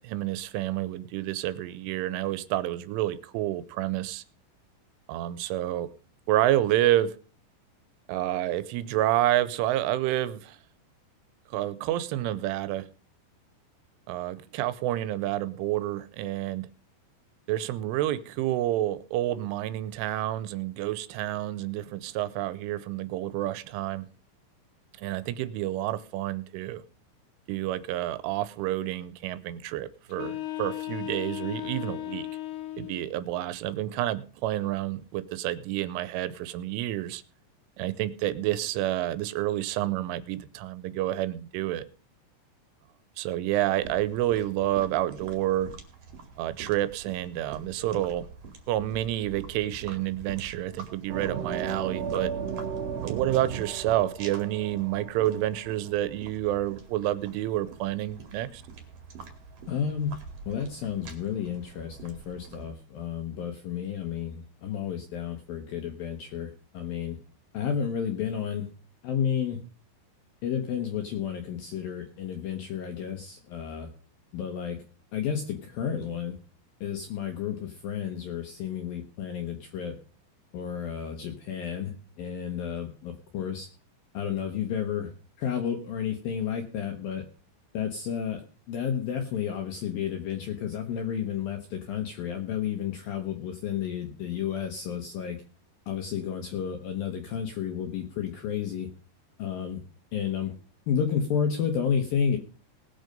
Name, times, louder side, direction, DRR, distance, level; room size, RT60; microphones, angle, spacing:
voice 1, 0.0-4.2 5.1-5.9 6.3-7.2 8.1-10.6 11.5-12.9 14.1-16.7 17.5-24.1 25.0-26.8 27.5-32.3 32.8-37.2 37.8-41.9 43.2-45.7 46.4-48.3 48.7-52.3 53.0-58.6, right 14 dB, 85° right, 15 dB, 3.2 m, -29 dB
sound 1, 30.1-33.1, left 16 dB, 90° left, 3.5 m, -36 dB
sound 2, 43.7-62.7, right 5 dB, 45° right, 2.4 m, -46 dB
sound 3, 51.1-55.7, right 7 dB, 60° right, 1.6 m, -34 dB
voice 2, 59.7-60.2 60.5-67.2 67.5-68.7 69.0-69.6 70.4-73.9 74.3-74.8 75.1-76.4 76.8-80.0 80.5-83.7 84.1-85.1 85.4-87.2 87.7-88.4 88.7-95.4 95.9-98.9 99.4-99.8 100.1-100.5 100.9-102.4, left 8 dB, 75° left, 5 dB, 2.2 m, -31 dB
19.5 x 6.6 x 5.2 m, 0.40 s
omnidirectional pair, 5.6 m